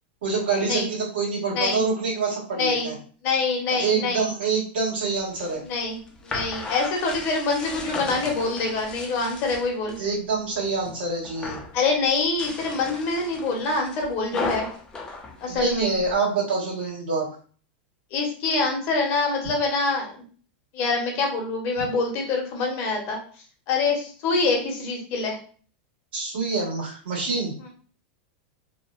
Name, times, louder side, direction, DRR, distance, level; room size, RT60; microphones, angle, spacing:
voice 1, 0.2-3.0 3.8-5.6 10.0-11.6 15.5-17.3 26.1-27.5, right 4 dB, 85° right, -4 dB, 1.4 m, -26 dB
voice 2, 2.6-2.9 3.2-4.3 5.6-6.0 6.2-10.0 11.7-14.7 15.4-15.9 18.1-20.1 20.7-23.2 23.7-25.4, left 3 dB, 45° left, 1 dB, 0.8 m, -25 dB
sound 1, 5.2-10.0 10.4-11.0 11.2-11.8 12.2-16.1, left 3 dB, 15° left, 0.4 m, -36 dB
2.8 x 2.1 x 2.4 m, 0.42 s
supercardioid pair, 150°, 6 cm